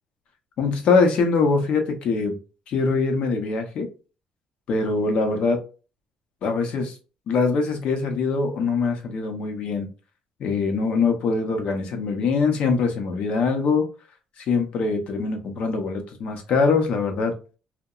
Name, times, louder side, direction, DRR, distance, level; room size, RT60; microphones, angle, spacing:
voice 1, 0.6-2.4 2.7-3.9 4.7-5.6 6.4-7.0 7.3-9.9 10.4-13.9 14.4-17.3, left 4 dB, 60° left, 4 dB, 0.6 m, -23 dB
2.8 x 2.1 x 2.3 m, 0.34 s
cardioid pair, 135°, 2 cm